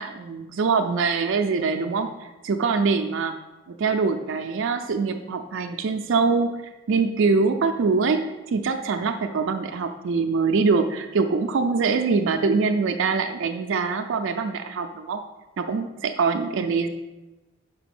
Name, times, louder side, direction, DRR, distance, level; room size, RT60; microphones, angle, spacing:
voice 1, 0.0-3.3 3.7-6.5 6.9-8.2 8.5-15.2 15.6-16.9, right 4 dB, 65° right, 5 dB, 0.4 m, -23 dB
6.1 x 4.5 x 5.9 m, 1.1 s
head